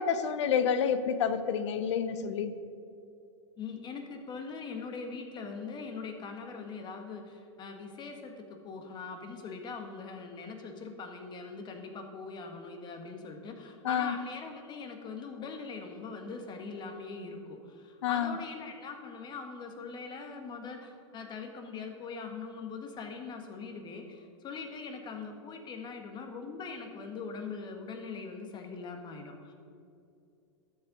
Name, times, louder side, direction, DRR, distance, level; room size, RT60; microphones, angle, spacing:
voice 1, 0.0-2.5 13.8-14.1 18.0-18.4, left 7 dB, 70° left, 12 dB, 0.9 m, -29 dB
voice 2, 3.6-29.5, left 4 dB, 30° left, 4 dB, 1.7 m, -42 dB
12.5 x 7.6 x 5.3 m, 2.6 s
hypercardioid pair, 115°, 16 cm